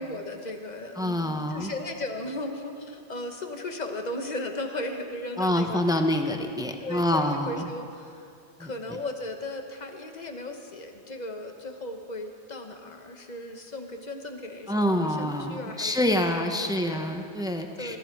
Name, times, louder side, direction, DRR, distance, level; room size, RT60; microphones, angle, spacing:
voice 1, 0.0-6.0 6.8-8.3 8.6-17.2 17.8-18.0, left 1 dB, 40° left, 4 dB, 1.3 m, -36 dB
voice 2, 1.0-1.7 5.4-7.6 8.6-8.7 14.7-18.0, left 1 dB, 5° right, 5 dB, 0.7 m, -26 dB
20.5 x 12.0 x 4.7 m, 2.5 s
omnidirectional pair, 1.2 m